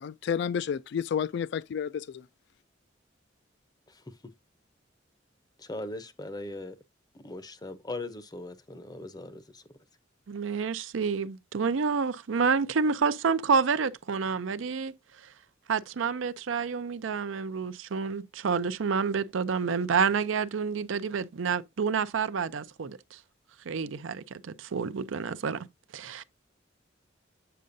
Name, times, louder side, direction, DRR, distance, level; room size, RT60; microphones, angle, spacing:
voice 1, 0.0-2.3, left 7 dB, 60° left, 0.3 m, -31 dB
voice 2, 5.6-6.8 7.1-9.6, left 2 dB, 20° left, 0.6 m, -39 dB
voice 3, 10.3-14.9 15.2-15.3 15.7-23.2 23.6-25.7 25.9-26.2, right 5 dB, 80° right, 0.5 m, -29 dB
7.5 x 6.7 x 2.6 m
head